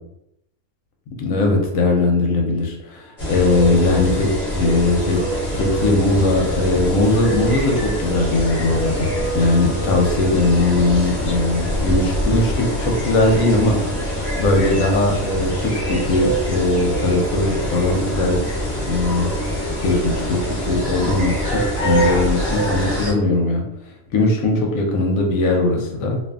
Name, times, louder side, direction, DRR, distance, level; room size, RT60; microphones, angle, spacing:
voice 1, 1.2-5.2 5.5-9.1 9.3-13.8 14.1-18.4 18.8-19.3 19.8-23.6 24.1-26.2, left 2 dB, 70° left, 2 dB, 0.9 m, -19 dB
sound 1, 3.2-23.1, equal, 30° left, 0.7 m, -24 dB
2.6 x 2.5 x 2.3 m, 0.80 s
omnidirectional pair, 1.6 m